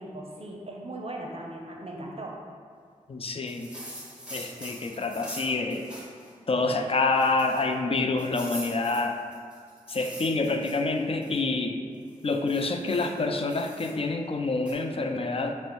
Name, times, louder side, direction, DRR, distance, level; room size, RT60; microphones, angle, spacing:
voice 1, 0.0-2.4, right 1 dB, 45° right, 0 dB, 0.6 m, -38 dB
voice 2, 3.1-3.7 4.3-5.9 6.5-9.2 9.9-11.8 12.2-15.5, left 3 dB, 45° left, 5 dB, 0.4 m, -27 dB
sound 1, 3.5-6.3 6.7-6.8 7.1-7.7 8.2-11.4 12.0-13.9 14.7-14.8, equal, 10° right, 1.2 m, -43 dB
6.1 x 2.1 x 3.0 m, 2.1 s
cardioid pair, 40°, 14 cm